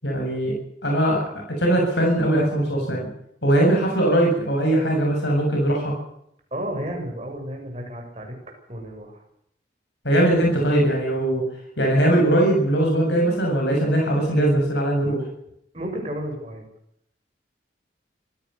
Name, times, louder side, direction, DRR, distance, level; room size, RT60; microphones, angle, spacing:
voice 1, 0.0-3.1 3.4-5.9 10.0-11.4 11.8-15.2, right 1 dB, 80° left, 0 dB, 7.3 m, -20 dB
voice 2, 6.5-8.4 8.7-9.2 15.7-16.7, right 1 dB, 35° right, 2 dB, 7.1 m, -32 dB
26.0 x 17.0 x 6.9 m, 0.76 s
head